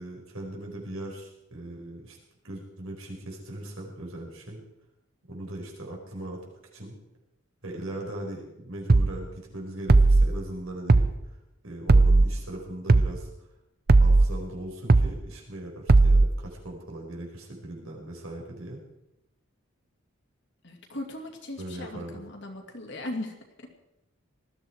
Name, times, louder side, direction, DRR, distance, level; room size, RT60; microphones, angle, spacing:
voice 1, 0.0-2.2 2.4-4.6 5.3-6.5 6.7-6.9 7.6-11.1 11.6-13.3 14.0-18.8 21.6-22.2, right 1 dB, 70° right, -1 dB, 4.9 m, -39 dB
sound 1, 8.9-9.1 9.9-10.3 10.9-11.1 11.9-12.3 12.9-13.1 13.9-14.3 14.9-15.1 15.9-16.3, right 3 dB, 45° right, 0.6 m, -17 dB
voice 2, 20.6-23.7, left 1 dB, 55° left, 2 dB, 2.6 m, -38 dB
20.0 x 14.0 x 4.6 m, 0.88 s
head